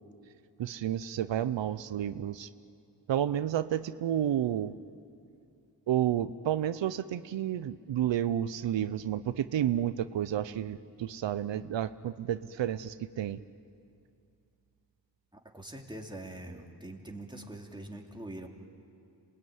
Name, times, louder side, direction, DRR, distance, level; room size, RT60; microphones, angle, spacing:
voice 1, 0.6-2.5 3.1-4.7 5.9-13.4, right 11 dB, 90° right, 13 dB, 0.7 m, -31 dB
voice 2, 15.3-18.5, right 1 dB, 10° right, 1 dB, 3.2 m, -43 dB
26.5 x 20.5 x 9.4 m, 2.5 s
cardioid pair, 60°, 43 cm